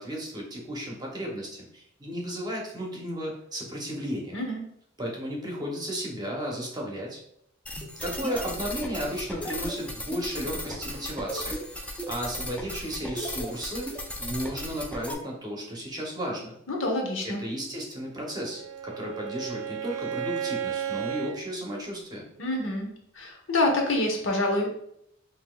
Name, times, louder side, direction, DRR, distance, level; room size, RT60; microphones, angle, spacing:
voice 1, 0.0-4.4 5.0-7.2 8.0-16.6 17.2-22.2, equal, 20° right, -2 dB, 0.8 m, -34 dB
sound 1, 7.6-15.1, equal, 5° left, 0.4 m, -36 dB
voice 2, 16.7-17.4 22.4-22.9 23.1-24.7, left 2 dB, 75° left, 1 dB, 0.9 m, -26 dB
Bowed string instrument, 18.2-21.4, right 9 dB, 90° right, 0.7 m, -33 dB
5.7 x 2.7 x 2.3 m, 0.74 s
head